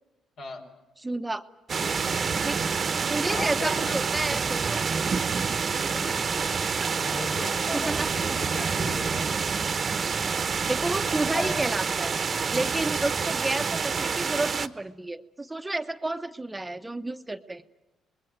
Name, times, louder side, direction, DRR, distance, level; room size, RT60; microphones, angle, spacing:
voice 1, 0.4-0.7 1.8-2.2 3.2-4.0 5.8-6.5 6.9-9.3 11.0-11.7, left 3 dB, 70° left, 3 dB, 4.1 m, -38 dB
voice 2, 1.0-1.4 2.4-2.6 3.1-4.8 5.9-6.2 7.7-8.6 10.7-12.1 12.5-17.6, right 2 dB, 15° right, 9 dB, 0.9 m, -31 dB
sound 1, 1.7-14.7, right 5 dB, 45° right, 1.0 m, -27 dB
26.5 x 21.0 x 9.3 m, 1.0 s
cardioid pair, 90°, 0 cm